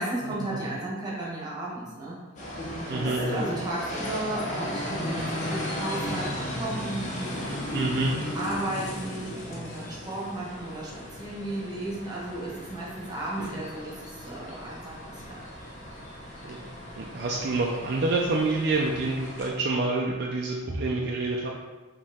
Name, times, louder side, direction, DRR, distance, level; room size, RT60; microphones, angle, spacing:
voice 1, 0.0-2.2 2.9-7.8 8.3-15.4 20.7-20.8, right 1 dB, 20° right, -5 dB, 1.0 m, -34 dB
sound 1, 2.4-19.5, left 1 dB, 35° left, 0.7 m, -36 dB
voice 2, 2.9-3.4 7.7-8.1 13.4-13.5 16.4-16.6 17.0-21.5, right 3 dB, 50° right, -1 dB, 0.4 m, -27 dB
5.2 x 2.9 x 3.5 m, 1.2 s
head